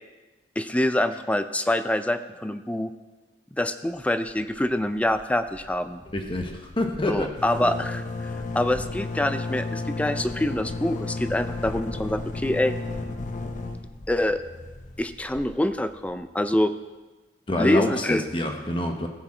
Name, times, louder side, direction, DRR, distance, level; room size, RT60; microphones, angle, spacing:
voice 1, 0.6-2.9 3.5-6.0 7.1-12.8 14.1-14.4 15.0-16.7 17.6-18.2, left 1 dB, 10° left, 11 dB, 0.4 m, -25 dB
sound 1, 4.4-4.8 5.1-5.2 5.5-16.1, left 2 dB, 45° left, 0.9 m, -34 dB
voice 2, 6.1-7.4 17.5-19.1, left 1 dB, 30° left, 3 dB, 1.2 m, -27 dB
15.5 x 7.1 x 4.4 m, 1.2 s
head